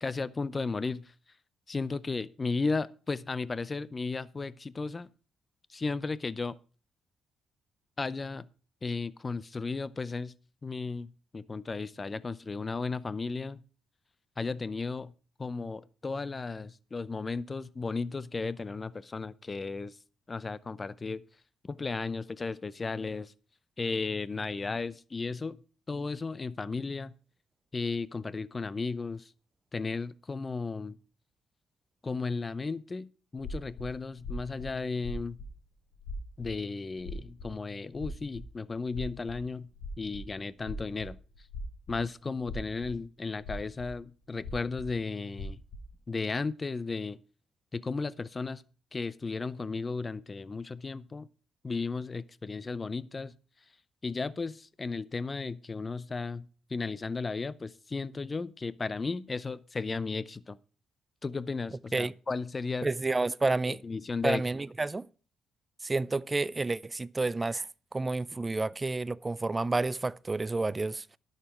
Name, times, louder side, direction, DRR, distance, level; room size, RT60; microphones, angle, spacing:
voice 1, 0.0-1.1 1.7-5.1 5.7-6.6 8.0-8.5 8.8-10.3 10.6-13.6 14.4-15.1 15.4-19.9 20.3-21.2 21.6-23.3 23.8-25.6 25.9-27.1 27.7-29.3 29.7-31.0 32.0-35.4 36.4-39.7 40.0-41.2 41.9-45.6 46.1-47.2 47.7-48.6 48.9-51.3 51.6-53.3 54.0-60.6 61.2-62.9 63.7-64.4, left 4 dB, 30° left, 0.5 m, -34 dB
sound 1, 33.4-34.7 35.0-35.5 35.9-36.5 37.0-37.5 37.9-38.5 38.9-40.3 40.6-42.0 42.4-42.9 43.4-44.0 44.4-44.9 45.3-45.9, left 1 dB, 65° left, 3.5 m, -40 dB
voice 2, 62.8-63.8 64.2-65.1 65.8-67.7 67.9-71.2, right 3 dB, 20° right, 0.4 m, -30 dB
11.5 x 6.7 x 6.0 m
cardioid pair, 90°, 0 cm